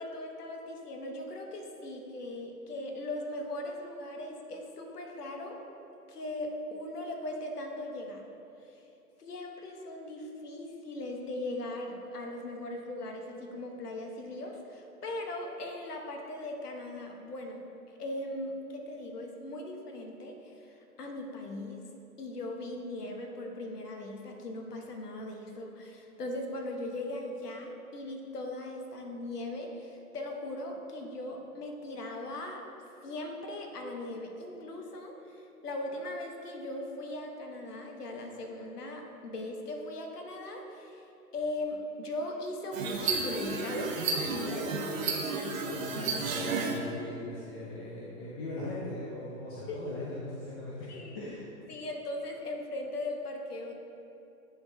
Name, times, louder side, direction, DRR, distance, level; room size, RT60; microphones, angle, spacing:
voice 1, 0.0-5.6 6.1-8.2 8.6-8.8 9.2-21.9 22.2-32.6 33.0-41.0 41.3-44.8 49.7-49.9 50.9-51.3 51.7-53.7, left 1 dB, 85° left, 2 dB, 1.1 m, -39 dB
sound 1, 42.7-46.8, right 4 dB, 60° right, 1.0 m, -32 dB
voice 2, 45.6-50.9 51.1-51.5, left 2 dB, 20° left, -7 dB, 0.4 m, -40 dB
9.5 x 4.2 x 2.7 m, 2.9 s
hypercardioid pair, 125°, 45 cm